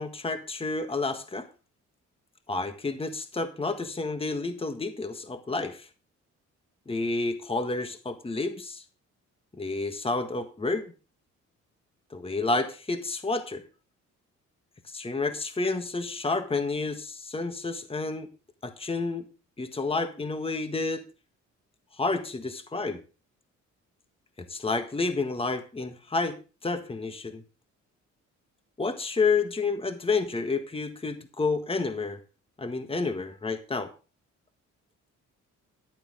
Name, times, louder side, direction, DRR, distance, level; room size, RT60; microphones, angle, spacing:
voice 1, 0.0-1.5 2.5-5.9 6.9-8.8 9.6-10.9 12.1-13.6 14.9-18.3 18.6-19.2 19.6-21.0 22.0-23.0 24.4-26.4 26.6-27.4 28.8-32.2 32.6-33.9, left 3 dB, 20° left, 8 dB, 1.6 m, -30 dB
13.5 x 10.5 x 3.7 m, 0.34 s
cardioid pair, 90°, 30 cm